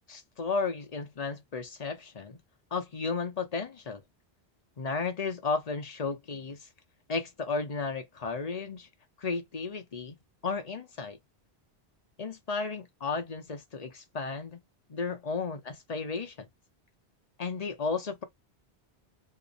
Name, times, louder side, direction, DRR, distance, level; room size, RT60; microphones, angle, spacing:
voice 1, 0.1-2.4 2.7-4.0 4.8-6.7 7.1-8.9 9.2-11.2 12.2-14.6 14.9-16.5 17.4-18.2, left 4 dB, 45° left, 0.8 m, -34 dB
2.9 x 2.1 x 3.8 m
omnidirectional pair, 1.1 m